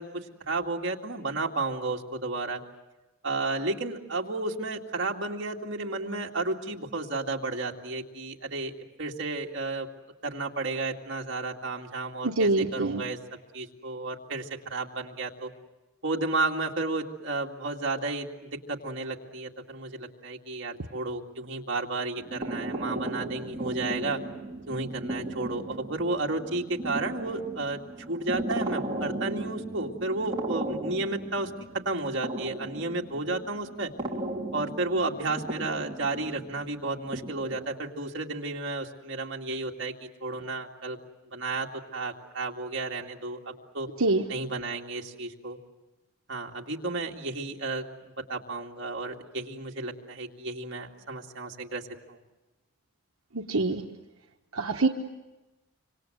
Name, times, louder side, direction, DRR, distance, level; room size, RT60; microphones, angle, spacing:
voice 1, 0.0-2.6 3.2-8.7 9.0-9.9 10.2-13.2 13.5-15.5 16.0-24.2 24.7-27.8 28.1-33.9 34.5-41.0 41.3-43.4 43.7-43.9 44.3-45.6 46.3-51.8 52.1-52.2, right 2 dB, 55° right, 0 dB, 2.3 m, -32 dB
voice 2, 12.2-13.0 44.0-44.2 53.3-53.8 54.5-54.9, right 2 dB, 80° right, 3 dB, 1.2 m, -25 dB
sound 1, 22.2-37.7, right 1 dB, 20° right, 3.2 m, -36 dB
26.0 x 26.0 x 7.8 m, 1.1 s
head